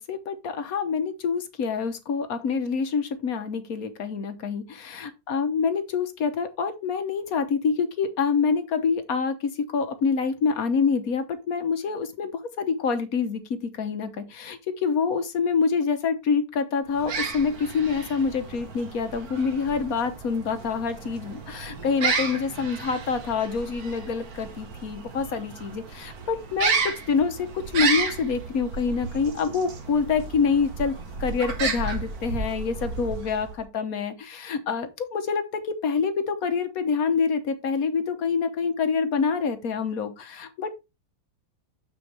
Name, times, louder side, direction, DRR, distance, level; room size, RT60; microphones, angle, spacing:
voice 1, 0.0-30.9 31.2-40.7, left 5 dB, 55° left, 1.1 m, -26 dB
sound 1, 16.9-33.6, right 5 dB, 50° right, 1.6 m, -32 dB
7.0 x 6.8 x 3.4 m
omnidirectional pair, 2.4 m